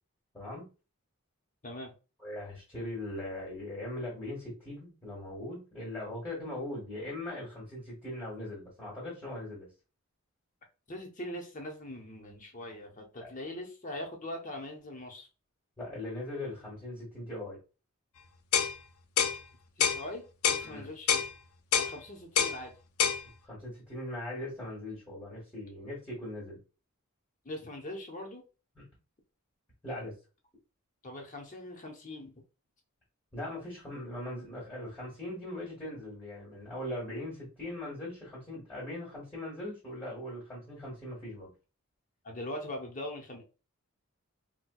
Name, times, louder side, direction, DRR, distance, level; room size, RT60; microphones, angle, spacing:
voice 1, 0.3-0.7 2.2-9.7 13.2-13.3 15.8-17.6 20.6-20.9 23.4-26.6 28.7-28.8 29.8-30.1 33.3-41.5, left 1 dB, 10° left, -7 dB, 1.4 m, -40 dB
voice 2, 10.9-15.3 19.8-21.3 21.7-22.7 27.4-28.4 31.0-32.3 42.2-43.4, left 1 dB, 35° left, 2 dB, 0.8 m, -41 dB
sound 1, 18.5-18.7 19.2-19.4 19.8-20.0 20.4-20.7 21.1-21.3 21.7-21.9 22.4-22.6 23.0-23.2, left 7 dB, 80° left, 0.4 m, -26 dB
4.3 x 2.2 x 2.3 m, 0.32 s
head